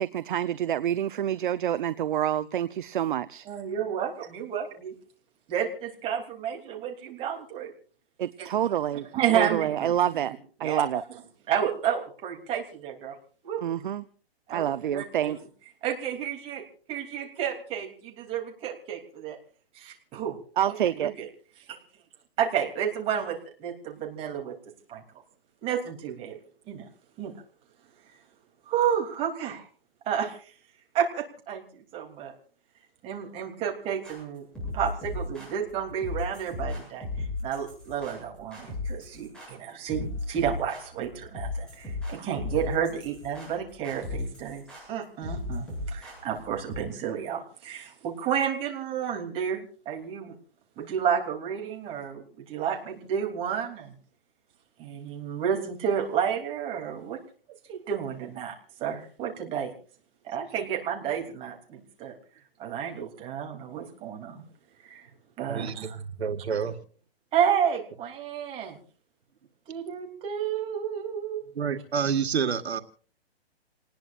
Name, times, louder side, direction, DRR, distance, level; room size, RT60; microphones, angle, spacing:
voice 1, 0.0-3.4 8.2-9.1 9.3-10.3 10.6-11.0 13.6-14.1 14.5-15.4 20.6-21.1, right 10 dB, 50° right, 14 dB, 0.8 m, -27 dB
voice 2, 3.5-4.9 5.5-7.7 8.4-8.5 9.1-9.9 10.3-10.4 10.6-11.2 11.5-13.2 13.4-13.6 14.5-15.3 15.8-19.4 19.7-20.3 20.7-21.3 22.4-24.5 24.9-25.0 25.6-26.4 26.7-26.9 27.2-27.3 28.7-29.7 30.1-30.4 30.9-32.3 33.0-34.5 34.7-37.0 37.4-44.6 44.9-50.3 50.8-53.9 54.8-57.2 57.7-59.7 60.2-62.1 62.6-64.4 64.8-65.1 65.4-66.0 67.3-68.8 69.7-71.4, right 8 dB, 20° right, 1 dB, 3.1 m, -31 dB
sound 1, 34.0-46.8, left 2 dB, 5° left, 8.0 m, -36 dB
voice 3, 65.5-65.9 66.2-66.8 71.5-72.8, right 6 dB, 85° right, 10 dB, 1.8 m, -28 dB
28.5 x 19.5 x 2.5 m, 0.43 s
hypercardioid pair, 160°, 31 cm